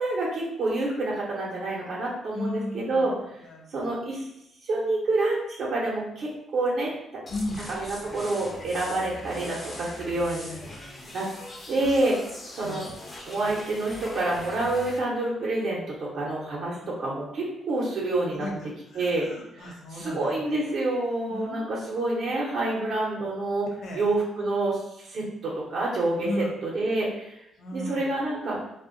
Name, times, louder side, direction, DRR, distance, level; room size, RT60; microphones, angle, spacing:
voice 1, 0.0-3.1 3.7-4.2 4.6-6.9 7.7-10.5 11.1-11.3 11.7-12.2 12.5-12.8 13.3-18.5 18.9-19.3 19.5-23.7 23.9-27.4 27.7-28.6, right 2 dB, 65° right, -4 dB, 0.7 m, -28 dB
voice 2, 2.3-3.1 3.4-3.7 7.3-7.6 10.5-11.2 12.6-12.9 18.3-20.6 21.3-21.7 23.8-24.1 26.2-26.5 27.6-28.0, left 1 dB, 70° left, -1 dB, 0.7 m, -35 dB
sound 1, 7.3-15.0, left 1 dB, 25° left, 0.6 m, -41 dB
2.5 x 2.2 x 2.5 m, 0.80 s
cardioid pair, 90°, 0 cm